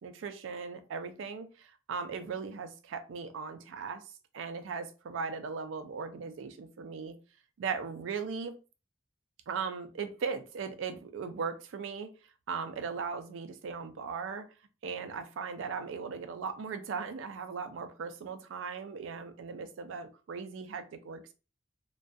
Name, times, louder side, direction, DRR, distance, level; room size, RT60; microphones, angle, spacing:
voice 1, 0.0-4.0 4.3-7.2 7.6-8.6 9.5-12.1 12.5-14.5 14.8-21.3, right 5 dB, 70° right, 8 dB, 0.4 m, -38 dB
2.3 x 2.2 x 2.6 m, 0.32 s
head